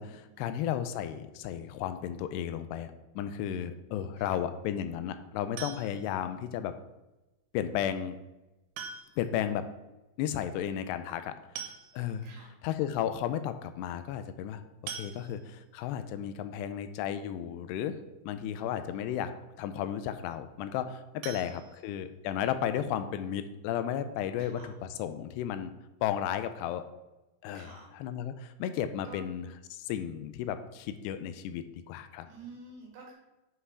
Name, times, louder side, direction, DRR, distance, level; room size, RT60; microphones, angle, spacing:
voice 1, 0.0-6.7 7.5-8.2 9.2-9.6 10.2-11.3 11.9-12.3 12.6-18.0 18.3-19.3 19.6-24.7 25.0-25.7 26.0-26.9 27.4-27.7 28.0-32.3, left 10 dB, 90° left, 10 dB, 2.7 m, -34 dB
sound 1, 5.6-6.2 7.7-7.8 8.7-9.4 9.7-9.8 10.1-10.2 11.2-11.3 11.6-12.3 12.8-12.9 13.3-13.4 14.9-15.7 21.2-22.4 22.8-22.9 23.3-23.4 23.8-23.9, right 7 dB, 85° right, 3.1 m, -43 dB
voice 2, 12.2-12.5 18.5-19.0 21.2-21.8 24.4-24.7 27.5-27.9 29.0-29.2 32.3-33.1, right 3 dB, 65° right, -1 dB, 3.3 m, -51 dB
8.0 x 5.6 x 4.8 m, 1.0 s
omnidirectional pair, 4.8 m